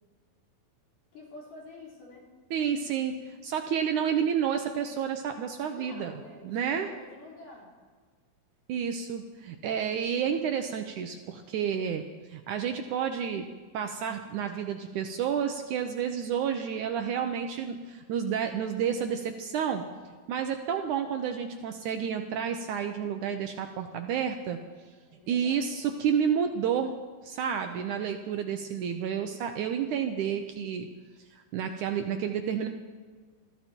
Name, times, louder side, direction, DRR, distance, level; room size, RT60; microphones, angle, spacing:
voice 1, 1.1-2.2 5.7-7.7 25.1-25.6, left 2 dB, 65° left, -3 dB, 5.4 m, -48 dB
voice 2, 2.5-6.2 6.4-6.9 8.7-12.0 12.3-13.5 13.7-19.9 20.3-24.6 25.3-27.0 27.2-30.9 31.3-32.7, right 8 dB, 75° right, 6 dB, 2.0 m, -30 dB
22.0 x 14.0 x 4.5 m, 1.5 s
omnidirectional pair, 4.1 m